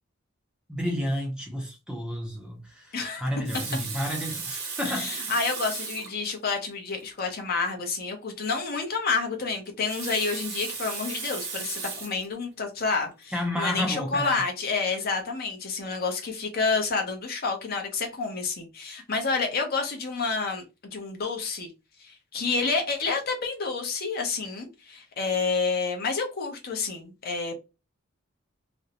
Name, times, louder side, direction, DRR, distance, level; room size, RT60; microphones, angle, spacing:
voice 1, 0.7-5.3 13.3-14.4, equal, 5° right, 0.5 m, -31 dB
voice 2, 2.9-3.3 4.8-20.6 20.9-21.7 22.0-27.6, left 4 dB, 45° left, 0.6 m, -29 dB
Water tap faucet, 3.3-6.2 7.0-7.1 7.3-7.4 9.6-12.2 12.9-13.1, right 5 dB, 50° right, 0.7 m, -36 dB
2.5 x 2.0 x 2.8 m
head